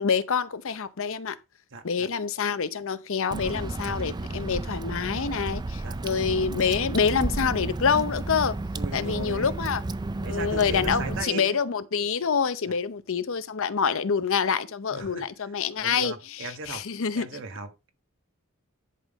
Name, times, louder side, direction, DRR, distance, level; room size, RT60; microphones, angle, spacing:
voice 1, 0.0-1.4 1.8-8.6 8.9-9.8 10.2-16.1 16.4-17.3, left 6 dB, 60° left, 0.7 m, -26 dB
voice 2, 1.7-2.1 5.8-6.0 8.7-9.5 10.2-11.6 14.9-15.3 15.8-16.9 17.1-17.9, right 3 dB, 60° right, 1.4 m, -37 dB
Water / Drip, 3.3-11.2, right 2 dB, 20° right, 0.4 m, -32 dB
11.0 x 3.8 x 5.2 m
head